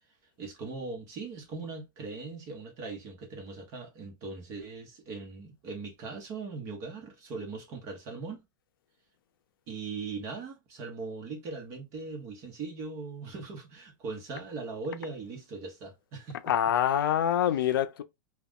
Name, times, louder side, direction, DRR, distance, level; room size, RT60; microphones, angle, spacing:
voice 1, 0.4-8.4 9.7-16.4, right 4 dB, 25° right, 0.7 m, -40 dB
voice 2, 16.5-18.0, left 10 dB, 80° left, 0.4 m, -25 dB
2.3 x 2.1 x 3.5 m
supercardioid pair, 175°, 11 cm